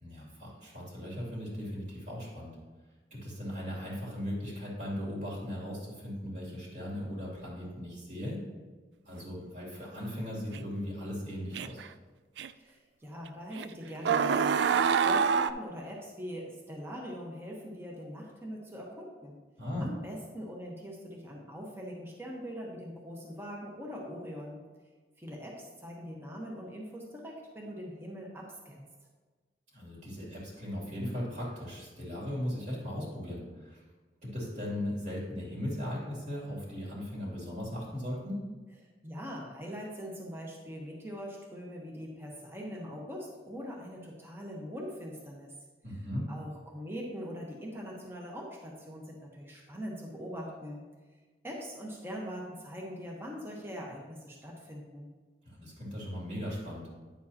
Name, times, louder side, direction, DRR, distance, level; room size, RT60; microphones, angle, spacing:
voice 1, 0.0-2.5 3.1-8.4 9.0-11.8 19.6-19.9 29.7-33.8 34.2-38.4 45.8-46.2 55.4-56.9, equal, 45° right, -4 dB, 2.7 m, -38 dB
sound 1, 10.5-10.6 11.5-11.9 12.4-12.5 13.6-13.7 14.0-15.5, right 6 dB, 80° right, 0.3 m, -26 dB
voice 2, 12.5-19.4 19.8-24.6 25.2-28.9 39.0-45.5 46.3-50.8 51.4-55.1, equal, 15° right, -2 dB, 1.1 m, -42 dB
9.6 x 7.4 x 2.9 m, 1.3 s
head